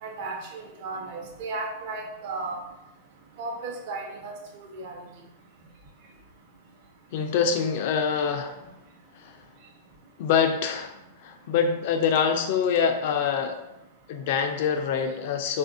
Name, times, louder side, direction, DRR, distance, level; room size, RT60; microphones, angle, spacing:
voice 1, 0.0-2.6 3.4-4.3 4.7-5.0, right 3 dB, 55° right, 1 dB, 0.7 m, -34 dB
voice 2, 7.1-8.6 9.1-9.4 10.2-13.6 14.1-15.6, left 6 dB, 60° left, 6 dB, 0.4 m, -25 dB
3.4 x 2.4 x 2.5 m, 0.90 s
hypercardioid pair, 125°, 0 cm